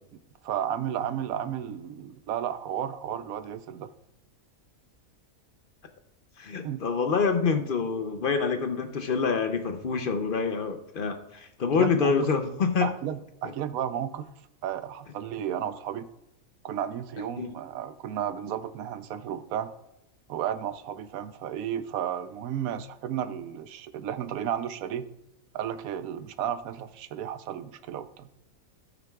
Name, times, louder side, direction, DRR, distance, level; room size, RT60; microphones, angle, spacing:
voice 1, 0.4-3.9 6.6-6.8 11.7-12.3 12.8-14.3 14.6-16.1 16.6-19.7 20.3-25.1 25.5-28.3, right 9 dB, 85° right, 12 dB, 1.1 m, -33 dB
voice 2, 6.4-12.9 17.4-17.5, left 5 dB, 55° left, 7 dB, 0.6 m, -26 dB
17.5 x 6.1 x 2.3 m, 0.84 s
omnidirectional pair, 1.5 m